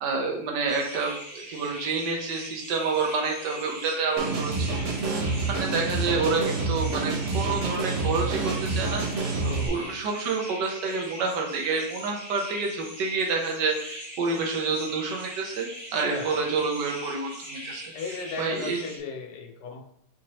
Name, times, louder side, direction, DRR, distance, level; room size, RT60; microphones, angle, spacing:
voice 1, 0.0-4.9 5.3-15.7 15.9-17.8 18.4-18.8, right 4 dB, 80° right, 1 dB, 1.5 m, -28 dB
sound 1, 0.7-19.0, equal, 25° right, 1.3 m, -41 dB
sound 2, 4.2-9.7, right 3 dB, 55° right, 0.9 m, -28 dB
voice 2, 6.2-6.6 9.4-9.8 16.1-16.4 17.9-19.8, left 4 dB, 70° left, 1 dB, 1.2 m, -37 dB
5.0 x 3.0 x 2.9 m, 0.69 s
omnidirectional pair, 1.9 m